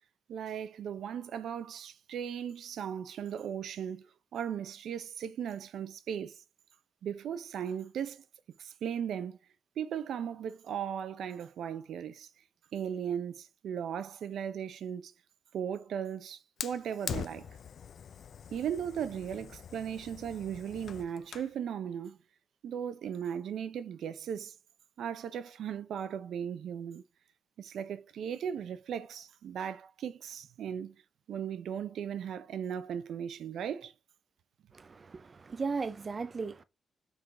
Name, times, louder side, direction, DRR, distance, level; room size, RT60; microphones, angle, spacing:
voice 1, 0.3-6.4 7.0-8.2 8.6-9.4 9.8-12.3 12.7-15.1 15.5-17.5 18.5-22.2 22.6-24.5 25.0-27.0 27.6-30.9 31.3-33.9, right 8 dB, 75° right, 0.6 m, -37 dB
Fire, 16.6-21.6, left 7 dB, 50° left, 0.4 m, -43 dB
voice 2, 34.7-36.6, right 4 dB, 30° right, 0.4 m, -36 dB
6.3 x 4.7 x 3.8 m
wide cardioid pair, 160°, 0 cm